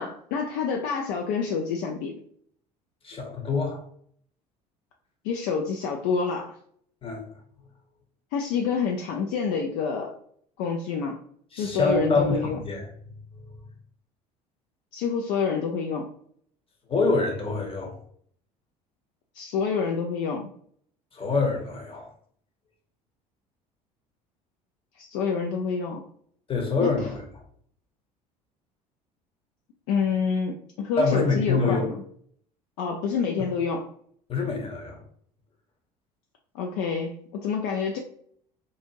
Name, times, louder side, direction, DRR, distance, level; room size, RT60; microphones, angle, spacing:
voice 1, 0.0-2.2 5.2-6.6 8.3-10.1 10.6-11.2 11.6-12.6 14.9-16.1 19.3-20.5 25.0-26.1 26.8-26.9 29.9-32.0 32.8-33.9 36.5-38.0, left 5 dB, 55° left, 2 dB, 0.4 m, -27 dB
voice 2, 3.0-3.8 7.0-7.3 11.5-12.9 16.9-17.9 21.1-22.1 26.5-27.2 31.0-31.9 34.3-35.0, left 3 dB, 25° left, 1 dB, 0.9 m, -25 dB
2.6 x 2.4 x 2.8 m, 0.62 s
figure-of-eight pair, 60°, 20 cm